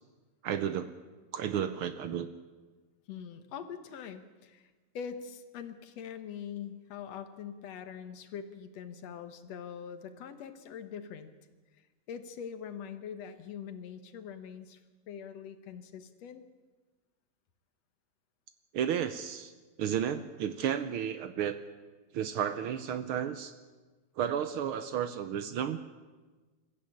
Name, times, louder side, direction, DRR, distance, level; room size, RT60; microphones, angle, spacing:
voice 1, 0.4-0.9 1.3-2.3 18.7-19.5 19.8-21.5 22.1-23.5 24.2-25.8, right 9 dB, 75° right, 10 dB, 1.2 m, -32 dB
voice 2, 3.1-11.3 12.1-14.8 15.1-16.4, left 7 dB, 65° left, 9 dB, 2.3 m, -43 dB
22.5 x 14.5 x 8.6 m, 1.3 s
omnidirectional pair, 3.3 m